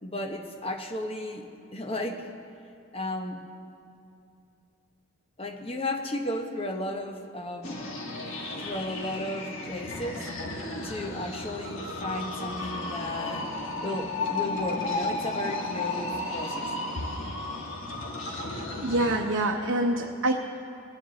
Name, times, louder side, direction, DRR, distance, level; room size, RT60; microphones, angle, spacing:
voice 1, 0.0-2.3 2.9-3.4 5.4-7.8 8.6-10.3 10.8-13.5 13.8-17.1, left 1 dB, 25° left, 3 dB, 0.9 m, -34 dB
sound 1, 7.6-19.2, left 2 dB, 75° left, 1.6 m, -34 dB
voice 2, 18.3-20.3, right 1 dB, 70° right, 0 dB, 0.8 m, -27 dB
22.0 x 9.2 x 4.0 m, 2.6 s
head